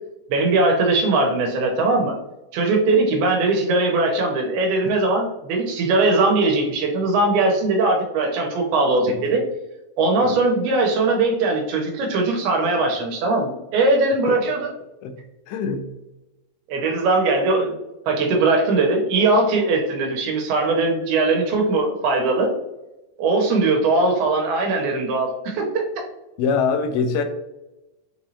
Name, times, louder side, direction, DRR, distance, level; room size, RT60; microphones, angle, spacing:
voice 1, 0.3-2.2 2.5-9.4 10.0-14.7 16.7-17.7 18.1-22.5 23.2-26.0, right 3 dB, 85° right, 2.7 m, -20 dB
voice 2, 15.5-15.9 26.4-27.2, left 5 dB, 85° left, 2.4 m, -23 dB
6.3 x 3.0 x 2.7 m
omnidirectional pair, 4.4 m